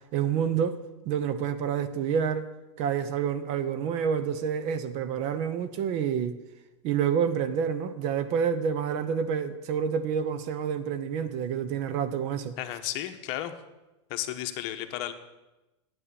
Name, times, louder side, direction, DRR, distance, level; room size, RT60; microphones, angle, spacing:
voice 1, 0.1-0.8 1.0-2.5 2.8-6.4 6.8-12.5, right 7 dB, 45° right, 12 dB, 0.9 m, -28 dB
voice 2, 12.6-13.5 14.1-15.1, left 13 dB, 50° left, 7 dB, 1.1 m, -33 dB
10.0 x 8.9 x 7.0 m, 1.0 s
supercardioid pair, 140°, 16 cm